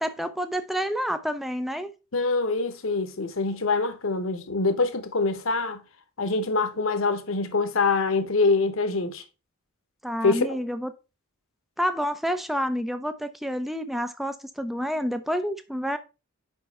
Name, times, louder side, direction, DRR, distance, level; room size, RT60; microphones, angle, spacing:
voice 1, 0.0-1.9 10.0-10.9 11.8-16.0, equal, ahead, 0.4 m, -29 dB
voice 2, 2.1-5.8 6.2-9.2 10.2-10.6, left 3 dB, 65° left, 0.9 m, -25 dB
5.3 x 4.6 x 4.1 m
head